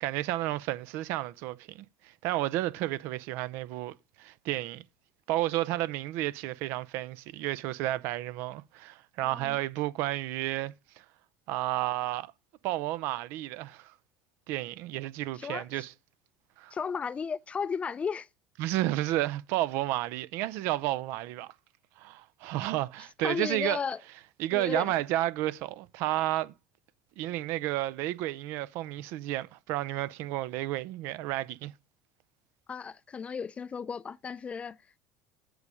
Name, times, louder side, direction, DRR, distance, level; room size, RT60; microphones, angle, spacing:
voice 1, 0.0-4.8 5.3-11.0 11.5-12.3 12.6-13.9 14.5-15.9 16.6-16.8 18.6-21.5 22.0-23.8 24.4-26.5 27.2-31.7, right 15 dB, 65° right, 0.6 m, -32 dB
voice 2, 15.3-15.8 16.7-18.3 23.2-24.0 24.5-24.9 32.7-34.8, left 6 dB, 30° left, 0.5 m, -34 dB
8.1 x 5.4 x 4.9 m
hypercardioid pair, 80°, 4 cm